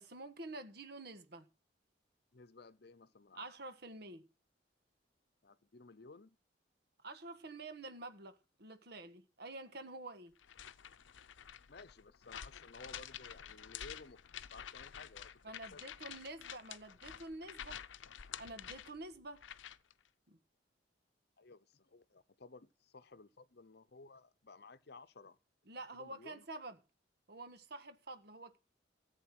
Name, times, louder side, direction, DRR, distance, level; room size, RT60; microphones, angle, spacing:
voice 1, 0.0-1.5 3.3-4.3 7.0-10.4 15.4-17.8 18.4-19.4 20.3-20.4 25.7-26.8 27.3-28.6, right 2 dB, 60° right, 1.5 m, -48 dB
voice 2, 2.3-3.5 5.4-6.4 11.7-15.3 15.7-15.9 21.4-25.4 26.0-26.5, left 3 dB, 60° left, 0.8 m, -56 dB
sound 1, 10.4-19.9, left 9 dB, 90° left, 0.6 m, -49 dB
14.5 x 8.2 x 6.1 m
head